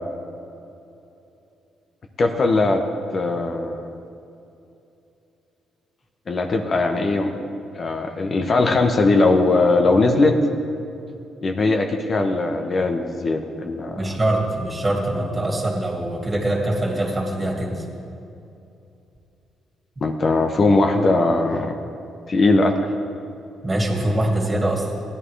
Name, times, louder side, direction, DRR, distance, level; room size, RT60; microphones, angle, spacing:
voice 1, 2.2-2.8 3.1-4.0 6.3-7.4 7.8-10.4 11.4-14.0 20.0-21.8 22.3-22.9, left 2 dB, 40° left, 4 dB, 0.9 m, -20 dB
voice 2, 13.9-17.8 20.0-20.1 23.6-24.9, right 1 dB, 25° right, -1 dB, 2.4 m, -23 dB
16.5 x 11.0 x 3.3 m, 2.7 s
cardioid pair, 90°, 0 cm